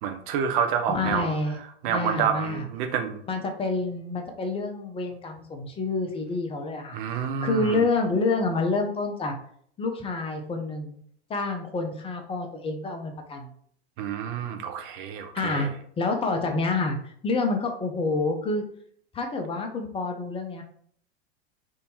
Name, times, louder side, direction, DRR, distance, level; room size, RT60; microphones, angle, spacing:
voice 1, 0.0-1.3 1.8-3.2 6.9-7.8 14.0-15.7, right 7 dB, 50° right, 5 dB, 0.7 m, -28 dB
voice 2, 0.9-1.6 1.9-2.7 3.3-7.0 7.4-9.3 9.8-11.0 11.3-13.5 15.3-15.7 16.0-17.0 17.2-18.6 19.1-20.6, left 3 dB, 15° left, 5 dB, 0.6 m, -28 dB
3.5 x 2.7 x 2.7 m, 0.62 s
figure-of-eight pair, 90°, 32 cm